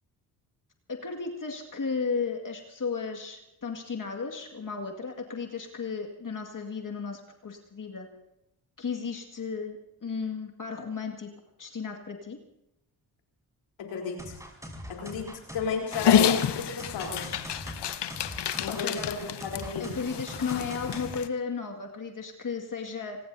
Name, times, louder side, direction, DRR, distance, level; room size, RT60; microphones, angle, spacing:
voice 1, 0.9-8.1 8.8-11.3 11.6-12.4 18.7-19.1 19.8-23.2, left 5 dB, 45° left, 3 dB, 2.2 m, -34 dB
voice 2, 13.8-14.4 14.9-17.4 18.6-19.9, left 5 dB, 80° left, 0 dB, 3.9 m, -34 dB
sound 1, 14.2-21.1, equal, 5° right, 5.5 m, -42 dB
Dog, 15.9-21.3, left 9 dB, 65° left, 1.0 m, -28 dB
26.0 x 19.0 x 2.8 m, 0.83 s
supercardioid pair, 45°, 45 cm